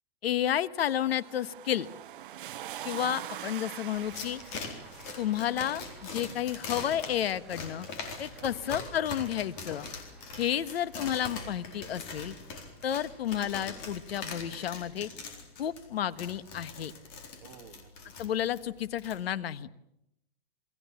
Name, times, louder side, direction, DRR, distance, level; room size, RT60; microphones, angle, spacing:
voice 1, 0.2-1.9 2.8-4.4 5.2-5.8 6.1-7.9 8.2-9.9 10.4-12.3 12.8-15.1 15.6-16.9 18.2-19.7, left 10 dB, 75° left, 15 dB, 1.5 m, -31 dB
sound 1, 0.8-9.9 11.2-11.3, right 12 dB, 55° right, 1.0 m, -45 dB
voice 2, 2.4-2.8 8.3-8.8 10.3-10.7 17.4-18.1, right 9 dB, 30° right, 5 dB, 2.2 m, -54 dB
Applause, 3.4-14.7, right 3 dB, ahead, 2.1 m, -59 dB
sound 2, 4.0-19.2, left 4 dB, 30° left, 4.2 m, -42 dB
28.5 x 22.0 x 7.3 m, 0.83 s
supercardioid pair, 180°, 31 cm